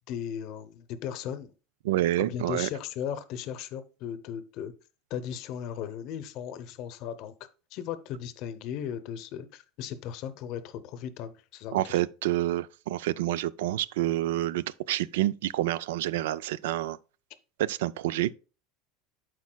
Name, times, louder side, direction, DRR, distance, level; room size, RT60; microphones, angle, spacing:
voice 1, 0.1-1.5 2.2-4.7 5.1-7.3 7.7-12.0, left 9 dB, 45° left, 0.7 m, -37 dB
voice 2, 1.8-2.7 11.7-17.0 17.6-18.3, right 14 dB, 85° right, 0.3 m, -28 dB
11.5 x 4.6 x 2.2 m
supercardioid pair, 165°, 0 cm